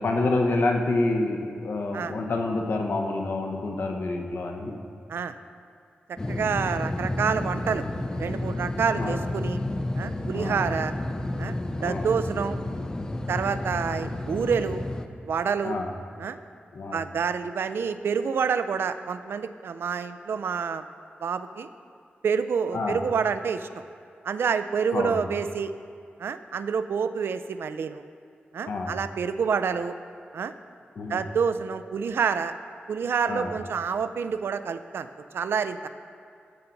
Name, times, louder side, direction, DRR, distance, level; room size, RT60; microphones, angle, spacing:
voice 1, 0.0-4.7 9.0-9.2 10.3-10.6 11.8-12.1 15.6-15.9 16.7-17.0 22.7-23.0 24.9-25.2 28.7-29.0 31.0-31.2 33.3-33.5, left 2 dB, 70° left, 3 dB, 0.9 m, -28 dB
voice 2, 6.1-7.8 8.2-9.6 9.9-10.9 11.4-12.6 13.3-14.8 15.2-15.8 16.2-16.4 16.9-20.8 21.2-21.7 22.2-23.8 24.2-25.7 26.2-28.0 28.5-30.0 30.3-30.5 31.1-32.5 32.9-35.1 35.3-35.9, right 6 dB, 90° right, 11 dB, 0.4 m, -28 dB
sound 1, 6.2-15.1, left 1 dB, 20° left, 0.4 m, -31 dB
13.5 x 5.7 x 3.9 m, 2.4 s
wide cardioid pair, 155°, 4 cm